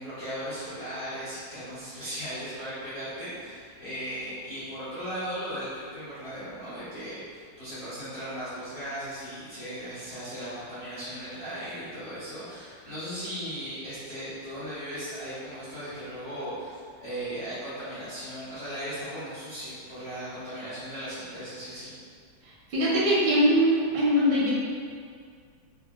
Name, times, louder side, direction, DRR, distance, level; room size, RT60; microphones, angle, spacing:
voice 1, 0.0-21.9, equal, 65° left, -13 dB, 0.3 m, -37 dB
voice 2, 22.7-24.5, equal, 85° right, -6 dB, 1.5 m, -22 dB
3.6 x 2.1 x 2.3 m, 2.2 s
omnidirectional pair, 2.1 m